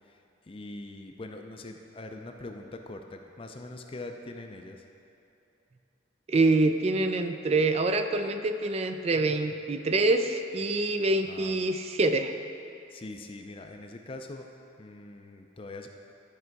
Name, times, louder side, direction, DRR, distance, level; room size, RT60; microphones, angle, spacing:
voice 1, 0.0-4.9 11.3-11.5 12.9-14.5 14.8-15.9, left 2 dB, 30° left, 4 dB, 0.4 m, -43 dB
voice 2, 6.3-12.4, right 2 dB, 35° right, 8 dB, 0.4 m, -25 dB
11.0 x 5.5 x 4.7 m, 2.8 s
head